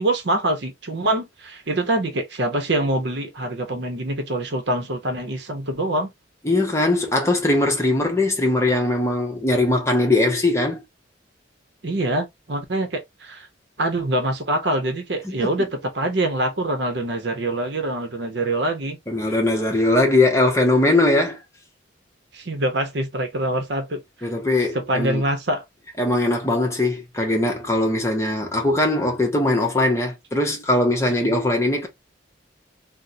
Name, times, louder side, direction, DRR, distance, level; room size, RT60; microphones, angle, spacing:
voice 1, 0.0-6.1 11.8-13.5 13.8-19.0 22.3-24.3 24.7-25.6, right 1 dB, 60° right, 0.8 m, -25 dB
voice 2, 6.4-10.8 15.2-15.5 19.1-21.4 24.2-25.2 26.0-31.9, left 2 dB, 15° left, 0.7 m, -20 dB
3.7 x 2.1 x 2.6 m
head